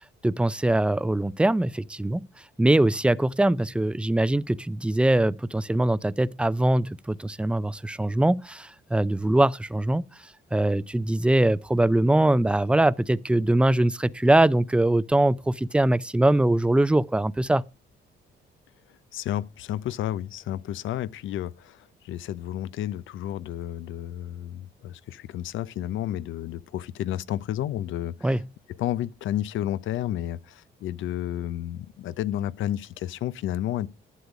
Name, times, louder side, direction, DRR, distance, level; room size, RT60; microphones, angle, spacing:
voice 1, 0.2-2.3 2.6-10.0 10.5-17.6 28.2-28.4, right 1 dB, 5° right, 0.5 m, -22 dB
voice 2, 19.1-28.3 28.8-33.9, left 12 dB, 80° left, 0.6 m, -31 dB
11.5 x 8.2 x 5.0 m
cardioid pair, 90°, 20 cm